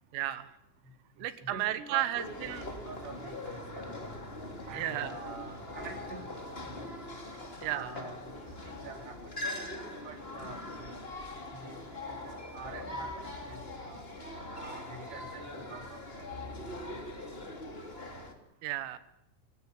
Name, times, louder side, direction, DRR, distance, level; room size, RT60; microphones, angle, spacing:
voice 1, 0.1-0.5 1.2-2.7 4.7-5.1 7.6-7.9 18.6-19.0, right 13 dB, 80° right, 12 dB, 3.9 m, -33 dB
voice 2, 1.4-2.6 2.9-3.9 4.7-6.3 6.7-6.9 7.7-8.4 8.6-9.2 10.1-10.6 11.5-11.8 12.0-14.1 14.5-16.0 16.3-16.5 17.0-17.1 18.2-18.3, right 4 dB, 60° right, 5 dB, 5.1 m, -46 dB
sound 1, 2.1-18.3, left 1 dB, 20° left, 1.8 m, -42 dB
25.0 x 16.0 x 10.0 m, 0.77 s
omnidirectional pair, 5.8 m